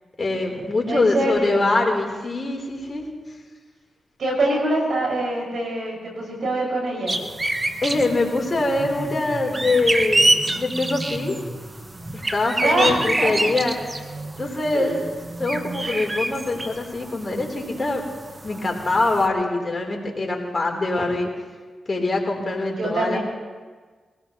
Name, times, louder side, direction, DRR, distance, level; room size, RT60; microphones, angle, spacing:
voice 1, 0.2-3.1 7.8-11.4 12.1-13.9 14.4-14.9 15.4-18.0 18.4-21.3 21.9-23.2, left 2 dB, 40° left, 1 dB, 3.6 m, -23 dB
voice 2, 0.9-1.7 4.2-7.2 12.6-13.4 14.7-14.9 22.7-23.2, right 1 dB, 75° right, -2 dB, 5.8 m, -24 dB
sound 1, 7.1-19.3, right 2 dB, 30° right, 1.4 m, -27 dB
23.0 x 16.5 x 3.1 m, 1.4 s
cardioid pair, 50°, 0 cm